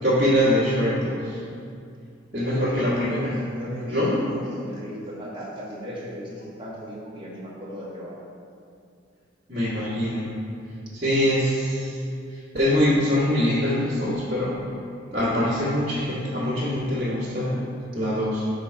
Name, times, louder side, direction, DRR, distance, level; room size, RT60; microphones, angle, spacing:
voice 1, 0.0-1.4 2.3-3.4 3.9-4.6 9.5-10.3 10.9-12.0 12.5-14.6 15.1-17.6 17.9-18.4, equal, 40° right, -13 dB, 1.5 m, -23 dB
voice 2, 2.4-2.8 3.4-4.0 4.3-4.4 4.6-8.1, equal, 25° right, -7 dB, 1.1 m, -36 dB
4.6 x 4.0 x 5.7 m, 2.4 s
head